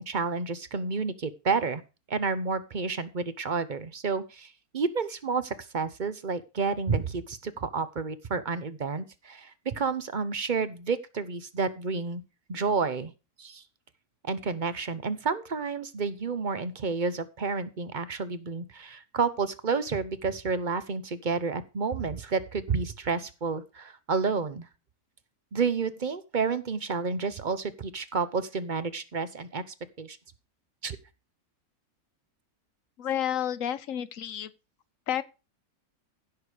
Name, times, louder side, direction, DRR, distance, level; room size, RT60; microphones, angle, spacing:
voice 1, 0.0-1.8 2.1-12.2 12.5-13.1 13.4-13.6 14.2-24.7 25.5-29.6 30.0-30.2 30.8-31.0, right 4 dB, 40° right, 0.8 m, -30 dB
voice 2, 33.0-34.5 35.1-35.2, left 10 dB, 65° left, 1.2 m, -30 dB
15.5 x 6.4 x 5.0 m
omnidirectional pair, 1.6 m